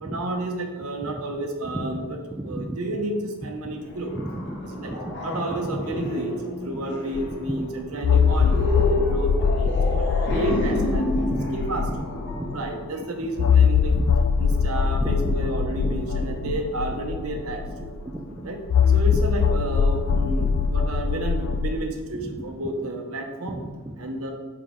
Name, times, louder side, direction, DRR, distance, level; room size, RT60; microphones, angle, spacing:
voice 1, 0.0-2.2 2.4-4.1 4.6-4.9 5.2-6.3 6.6-11.2 11.5-12.1 12.5-13.9 14.4-17.9 18.4-18.6 18.9-23.6 24.0-24.3, right 2 dB, 85° right, 3 dB, 0.9 m, -31 dB
voice 2, 2.3-2.8 3.6-3.7 4.1-4.5 4.9-5.4 5.9-6.0 6.7-6.8 8.5-9.2 10.3-10.6 11.2-11.5 11.9-12.0 12.3-12.6 13.9-14.0 14.5-14.6 15.0-15.3 15.8-16.1 16.4-16.5 18.1-18.5 20.1-20.6 22.2-22.3 23.5-24.0, right 1 dB, 10° right, -1 dB, 0.4 m, -34 dB
sound 1, 3.8-13.5, left 2 dB, 50° left, 0.9 m, -30 dB
sound 2, 7.1-7.2 8.0-12.6 13.4-18.0 18.7-21.7, left 6 dB, 75° left, 0.3 m, -22 dB
5.9 x 4.8 x 3.7 m, 1.3 s
head